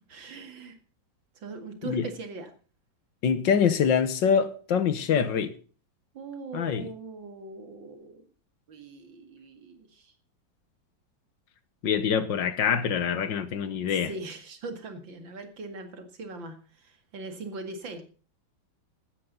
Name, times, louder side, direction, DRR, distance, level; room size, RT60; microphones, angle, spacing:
voice 1, 0.1-0.8 1.4-2.5 6.1-8.2 8.7-10.1 13.9-18.0, right 3 dB, 75° right, 2.8 m, -41 dB
voice 2, 3.2-5.5 6.5-6.9 11.8-14.1, left 7 dB, 70° left, 1.9 m, -25 dB
15.5 x 12.5 x 4.0 m
omnidirectional pair, 2.1 m